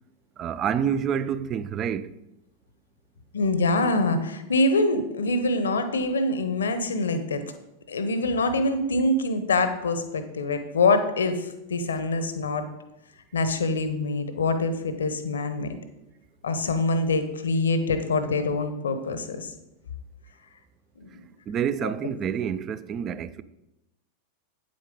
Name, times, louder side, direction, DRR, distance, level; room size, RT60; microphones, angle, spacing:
voice 1, 0.4-2.1 21.5-23.4, right 8 dB, 30° right, 0.4 m, -28 dB
voice 2, 3.3-7.5 7.9-12.7 13.3-15.8 16.4-19.5 21.0-21.1 21.8-21.9, left 2 dB, 70° left, 0.8 m, -25 dB
8.9 x 7.8 x 3.8 m
figure-of-eight pair, 90°, 0 cm